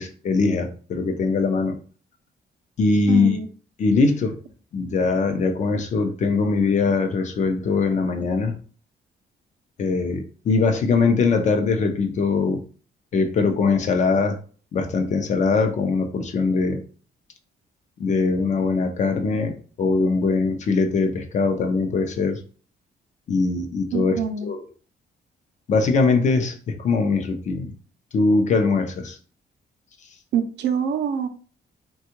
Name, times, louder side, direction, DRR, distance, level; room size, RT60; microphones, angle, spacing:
voice 1, 0.0-1.8 2.8-3.4 3.8-4.4 4.7-8.5 9.8-12.6 13.1-14.4 14.7-16.8 18.0-22.4 23.3-24.6 25.7-27.7 28.1-29.2, left 4 dB, 45° left, 7 dB, 0.5 m, -21 dB
voice 2, 3.1-3.5 23.9-24.5 30.3-31.3, right 7 dB, 75° right, 7 dB, 0.5 m, -25 dB
3.5 x 2.3 x 2.8 m, 0.40 s
cardioid pair, 160°, 18 cm